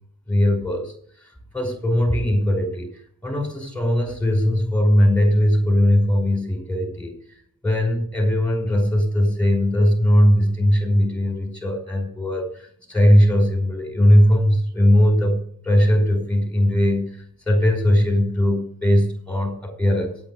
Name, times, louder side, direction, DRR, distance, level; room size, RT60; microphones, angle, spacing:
voice 1, 0.3-7.4 7.6-15.4 15.6-20.2, equal, 5° left, 3 dB, 5.4 m, -19 dB
8.6 x 8.5 x 9.5 m, 0.62 s
cardioid pair, 70°, 36 cm